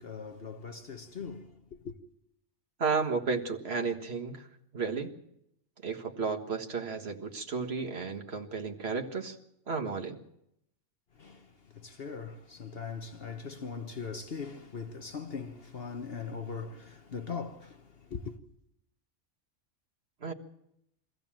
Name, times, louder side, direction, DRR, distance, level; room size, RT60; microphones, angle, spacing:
voice 1, 0.0-2.0 11.1-18.4, left 5 dB, 55° left, 1.2 m, -40 dB
voice 2, 2.8-4.5 4.7-5.1 5.8-9.4 9.7-10.2 20.2-20.3, right 5 dB, 60° right, 1.8 m, -33 dB
24.0 x 15.0 x 7.4 m
omnidirectional pair, 1.2 m